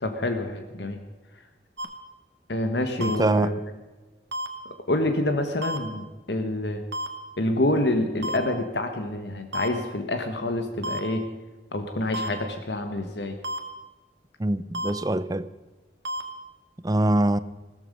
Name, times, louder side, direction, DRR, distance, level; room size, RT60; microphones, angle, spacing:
voice 1, 0.0-1.0 2.5-3.6 4.9-6.8 7.4-11.2 11.7-13.4, left 1 dB, 75° left, 1.4 m, -27 dB
sound 1, 1.8-1.9 3.0-3.2 4.3-4.5 5.6-5.8 6.9-7.1 8.2-8.4 9.5-9.7 10.8-11.0 12.1-12.3 13.4-13.6 14.7-14.9 16.0-16.2, equal, 80° right, 1.7 m, -30 dB
voice 2, 3.0-3.6 14.4-15.5 16.8-17.4, right 1 dB, 20° right, 0.6 m, -23 dB
16.5 x 14.0 x 5.4 m
head